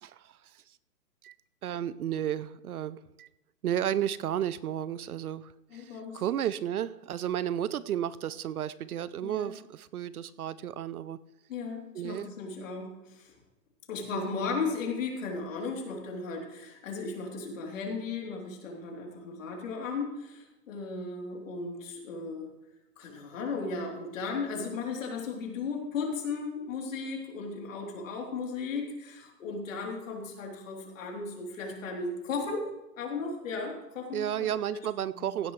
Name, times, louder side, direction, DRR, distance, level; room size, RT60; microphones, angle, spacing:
voice 1, 0.0-0.6 1.2-1.3 1.6-3.3 3.6-11.2 11.9-12.3 14.1-14.4 34.1-35.5, right 10 dB, 60° right, 17 dB, 0.6 m, -33 dB
voice 2, 5.7-6.2 9.2-9.5 11.5-13.3 13.9-22.5 23.0-32.6 33.0-34.2 34.7-34.8 35.1-35.3, left 4 dB, 50° left, 0 dB, 3.4 m, -36 dB
16.0 x 10.0 x 3.2 m, 0.97 s
hypercardioid pair, 155°, 49 cm